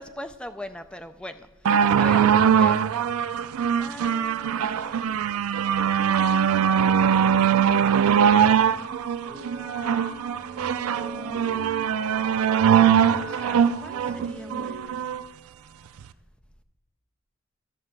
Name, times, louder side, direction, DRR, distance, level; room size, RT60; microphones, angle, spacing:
voice 1, 0.0-1.5 1.9-2.8 3.8-5.1 8.0-9.9 10.3-10.6 12.6-15.0, left 1 dB, 5° left, 9 dB, 0.4 m, -41 dB
sound 1, 1.7-15.2 16.0-16.1, right 8 dB, 80° right, 0.4 m, -21 dB
sound 2, 9.2-14.8, right 2 dB, 50° right, 1.7 m, -40 dB
12.5 x 4.8 x 6.6 m, 1.2 s
head